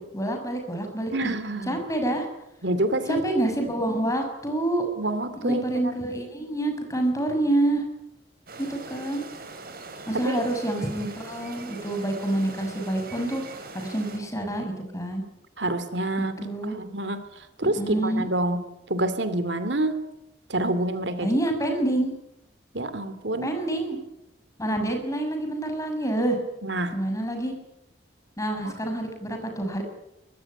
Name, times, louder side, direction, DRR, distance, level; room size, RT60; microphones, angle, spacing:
voice 1, 0.0-1.3 1.7-2.3 3.0-4.9 5.4-7.8 8.6-9.2 10.1-13.4 13.7-15.2 16.4-16.8 17.6-18.3 21.2-22.1 23.4-24.0 24.6-26.4 26.9-27.5 28.4-29.8, right 1 dB, 15° left, 4 dB, 6.3 m, -27 dB
voice 2, 1.1-1.8 2.6-3.2 5.0-5.9 10.1-10.5 15.6-18.6 18.9-20.0 20.5-21.4 21.7-21.8 22.7-23.5 26.6-27.0 28.6-28.7, right 1 dB, 70° right, 11 dB, 2.7 m, -27 dB
sound 1, 8.5-14.2, right 3 dB, 55° right, 5.5 m, -41 dB
24.0 x 20.5 x 10.0 m, 0.85 s
head